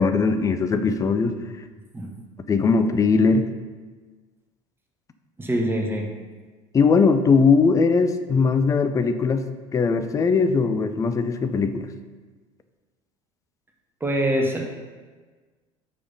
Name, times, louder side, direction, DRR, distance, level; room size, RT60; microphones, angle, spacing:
voice 1, 0.0-1.4 2.5-3.5 6.7-9.5 9.7-11.9, left 4 dB, 20° left, 9 dB, 0.4 m, -20 dB
voice 2, 5.4-6.1 14.0-14.7, right 1 dB, 15° right, 1 dB, 1.1 m, -24 dB
7.0 x 4.8 x 3.9 m, 1.4 s
figure-of-eight pair, 65°, 17 cm